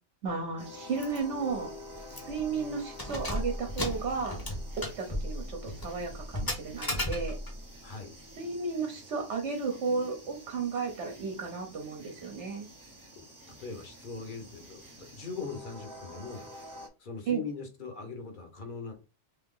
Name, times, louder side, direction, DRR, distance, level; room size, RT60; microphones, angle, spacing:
voice 1, 0.2-1.7 2.1-4.4 4.8-7.4 8.4-12.7 17.3-17.4, right 4 dB, 70° right, 2 dB, 1.1 m, -33 dB
sound 1, 0.6-16.9, equal, 20° right, 0.6 m, -49 dB
Keys jangling, 1.0-1.2 1.5-1.6 2.1-2.4 2.9-7.6, left 1 dB, 20° left, 0.8 m, -35 dB
voice 2, 2.1-2.7 7.8-8.1 13.1-16.4 17.0-18.9, left 4 dB, 45° left, 4 dB, 1.0 m, -41 dB
3.2 x 2.9 x 3.7 m, 0.30 s
omnidirectional pair, 1.2 m